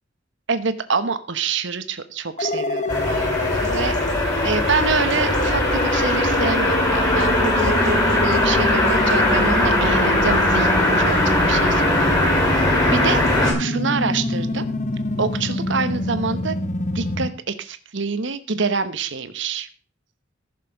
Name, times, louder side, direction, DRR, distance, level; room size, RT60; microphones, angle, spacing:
voice 1, 0.5-4.2 4.4-14.6 15.2-16.6 16.9-19.7, right 4 dB, 70° right, 11 dB, 1.1 m, -26 dB
sound 1, 2.4-17.3, left 1 dB, 40° left, 1.0 m, -25 dB
sound 2, 2.9-13.5, left 1 dB, 20° left, 4.5 m, -20 dB
15.0 x 6.7 x 5.1 m, 0.38 s
head